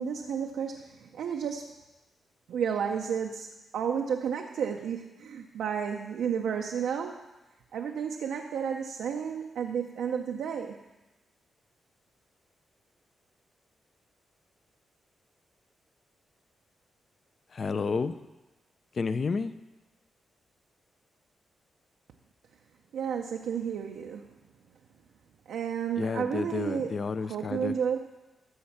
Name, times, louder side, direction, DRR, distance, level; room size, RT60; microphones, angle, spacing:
voice 1, 0.0-1.8 2.5-3.5 3.7-7.3 7.7-10.8 22.9-24.3 25.5-27.0 27.2-28.0, right 7 dB, 85° right, 2 dB, 0.6 m, -32 dB
voice 2, 17.5-18.2 18.9-19.5 26.0-27.7, left 4 dB, 45° left, 13 dB, 0.5 m, -30 dB
13.0 x 4.3 x 7.3 m, 1.1 s
cardioid pair, 115°, 0 cm